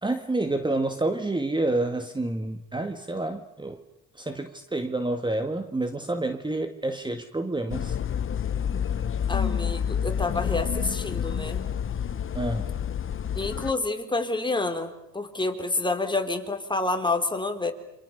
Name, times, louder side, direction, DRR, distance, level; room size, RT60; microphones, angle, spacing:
voice 1, 0.0-3.8 4.2-8.0 12.3-12.7, right 2 dB, 15° right, 8 dB, 1.9 m, -28 dB
sound 1, 7.7-13.7, left 8 dB, 45° left, 1.0 m, -28 dB
voice 2, 9.3-11.6 13.3-17.7, left 2 dB, 15° left, 5 dB, 4.1 m, -28 dB
29.0 x 27.0 x 6.9 m, 0.83 s
cardioid pair, 90°, 30 cm